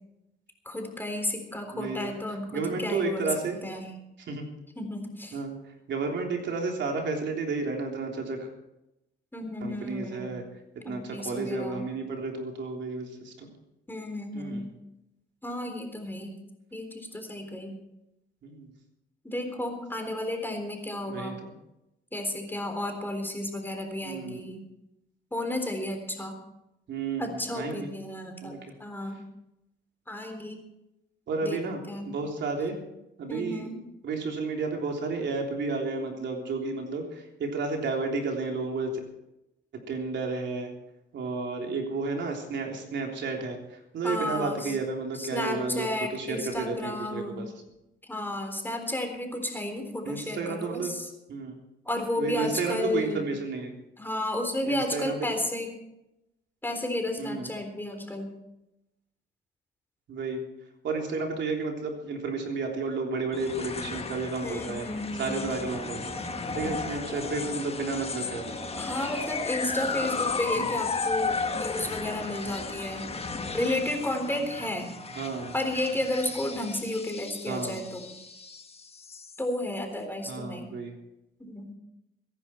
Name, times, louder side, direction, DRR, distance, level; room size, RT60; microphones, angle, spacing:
voice 1, 0.7-3.3 3.6-3.9 4.8-5.4 9.3-10.3 10.8-11.8 13.9-14.7 15.4-16.4 16.7-17.8 19.2-21.4 22.1-24.6 25.3-26.4 27.2-29.3 30.1-30.6 31.4-31.6 31.9-32.1 33.3-33.8 44.0-44.7 45.2-47.4 48.1-51.1 51.9-53.2 54.0-55.7 56.6-58.3 64.4-65.5 68.8-73.1 73.5-74.9 75.5-78.1 79.4-80.8 81.4-81.7, left 1 dB, 10° left, 4 dB, 3.7 m, -32 dB
voice 2, 1.7-2.1 2.5-3.6 4.2-4.5 5.3-5.5 5.9-8.5 9.6-10.4 10.7-13.5 14.3-14.7 18.4-18.7 21.1-21.5 24.0-24.4 26.9-27.9 28.4-28.6 31.3-32.8 33.2-33.6 34.0-39.0 39.7-40.7 41.1-47.5 50.0-50.9 51.3-51.5 52.2-53.7 54.6-55.2 57.2-57.5 60.1-60.4 60.8-64.9 65.1-66.2 66.5-68.5 70.5-70.7 75.1-75.5 77.5-77.8 80.3-80.9, right 3 dB, 65° right, 1 dB, 3.5 m, -32 dB
sound 1, 63.3-79.8, left 4 dB, 30° left, 1.4 m, -35 dB
sound 2, 65.7-77.1, right 3 dB, 50° right, 5.0 m, -46 dB
23.0 x 11.0 x 4.5 m, 0.89 s
cardioid pair, 90°, 20 cm